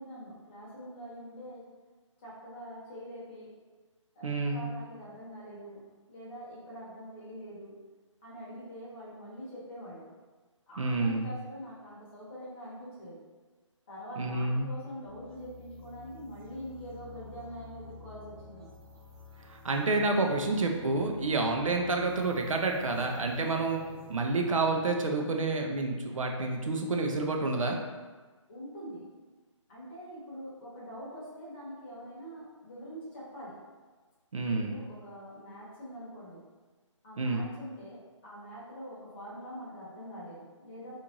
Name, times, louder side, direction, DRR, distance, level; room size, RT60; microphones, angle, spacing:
voice 1, 0.0-1.6 2.2-3.5 4.1-7.7 8.2-10.1 10.7-13.2 13.9-18.7 28.5-29.0 29.7-33.5 34.5-36.4 37.0-40.9, equal, 20° left, -8 dB, 1.0 m, -44 dB
voice 2, 4.2-4.7 10.8-11.3 14.2-14.7 19.5-23.8 24.1-27.8 34.3-34.8 37.2-37.4, right 3 dB, 80° right, 2 dB, 0.6 m, -29 dB
sound 1, 15.0-24.9, equal, 45° right, 1.0 m, -50 dB
3.0 x 2.6 x 3.7 m, 1.3 s
hypercardioid pair, 165°, 16 cm